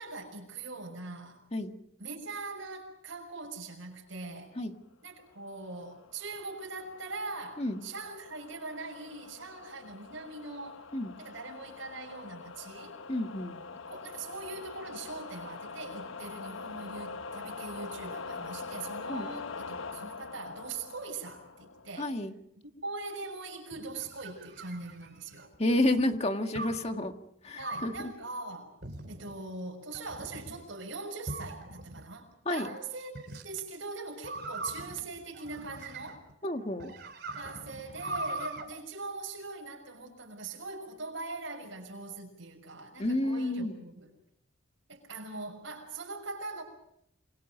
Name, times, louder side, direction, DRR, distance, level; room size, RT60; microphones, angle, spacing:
voice 1, 0.0-1.4 2.0-4.5 5.0-10.9 11.2-13.0 13.9-22.1 22.8-25.5 27.6-28.8 29.1-36.3 37.3-44.1 44.9-46.6, right 3 dB, 70° right, 2 dB, 6.3 m, -41 dB
sound 1, 5.7-22.2, left 4 dB, 80° left, 1.0 m, -44 dB
voice 2, 13.1-13.6 19.1-19.3 22.0-22.3 25.6-27.1 27.4-28.1 32.5-32.7 36.4-36.9 43.0-43.7, left 1 dB, 30° left, 6 dB, 1.8 m, -30 dB
sound 2, 23.7-25.5 26.6-26.9 27.6-28.0 28.8-29.3 29.9-30.6 31.3-32.0 33.2-33.5 34.2-36.3 36.8-38.7, right 2 dB, 50° right, 3.9 m, -40 dB
28.5 x 25.5 x 5.3 m, 0.76 s
head